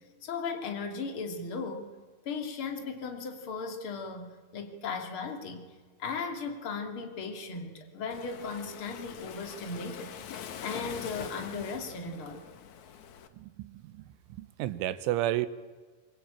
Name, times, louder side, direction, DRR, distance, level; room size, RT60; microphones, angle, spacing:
voice 1, 0.2-2.0 2.2-5.6 6.0-10.1 10.6-12.4, left 4 dB, 35° left, 4 dB, 2.6 m, -37 dB
Waves surf, 8.1-13.3, left 8 dB, 85° left, 1.6 m, -44 dB
voice 2, 13.3-14.1 14.4-15.5, right 14 dB, 80° right, 14 dB, 3.4 m, -32 dB
25.5 x 23.0 x 8.9 m, 1.4 s
omnidirectional pair, 5.6 m